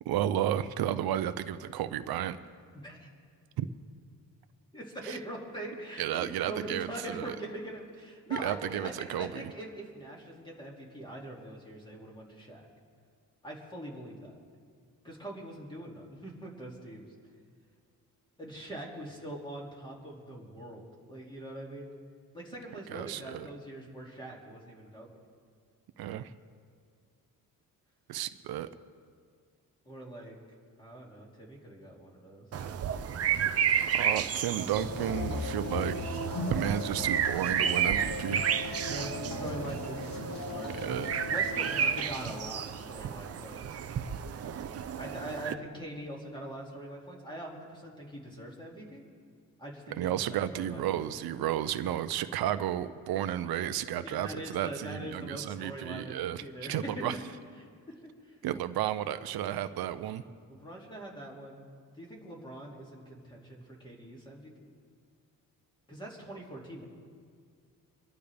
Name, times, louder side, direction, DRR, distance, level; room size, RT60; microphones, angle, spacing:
voice 1, 0.1-2.4 3.6-3.7 5.1-5.2 6.0-6.9 7.1-7.3 8.3-9.4 22.9-23.5 26.0-26.3 28.1-28.7 33.8-35.9 36.5-38.5 40.8-41.1 50.0-56.4 56.7-57.2 58.4-60.2, right 11 dB, 80° right, 11 dB, 0.6 m, -32 dB
voice 2, 2.7-3.1 4.7-12.7 13.4-14.4 15.0-17.0 18.4-21.9 22.3-25.1 29.8-30.4 30.8-32.5 38.9-41.0 41.3-43.8 45.0-49.0 49.6-51.1 54.0-57.2 57.9-58.4 60.5-61.7 61.9-64.7 65.9-66.8, right 1 dB, 15° left, -2 dB, 2.5 m, -43 dB
sound 1, 32.5-45.5, right 8 dB, 40° right, 0.6 m, -32 dB
sound 2, 34.7-42.0, left 2 dB, 65° left, 2.1 m, -37 dB
25.0 x 11.5 x 3.5 m, 2.1 s
cardioid pair, 160°, 36 cm